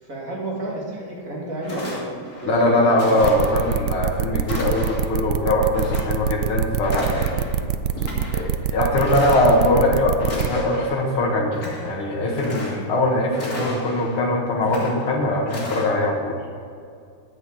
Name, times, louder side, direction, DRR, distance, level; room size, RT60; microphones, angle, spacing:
voice 1, 0.0-3.0, right 1 dB, 40° right, -4 dB, 2.7 m, -31 dB
sound 1, 1.2-1.3 1.6-2.5 3.0-3.8 4.4-5.1 5.7-6.5 6.8-7.6 7.9-8.5 8.9-9.8 10.2-11.0 11.4-11.9 12.3-13.0 13.3-14.2 14.6-15.1 15.5-15.9, left 1 dB, 40° left, 3.1 m, -33 dB
voice 2, 2.4-7.5 8.3-11.6 11.8-16.4, left 1 dB, 75° left, -2 dB, 2.5 m, -21 dB
sound 2, 3.2-10.5, right 9 dB, 80° right, 0.9 m, -24 dB
10.5 x 8.2 x 6.4 m, 2.3 s
omnidirectional pair, 2.4 m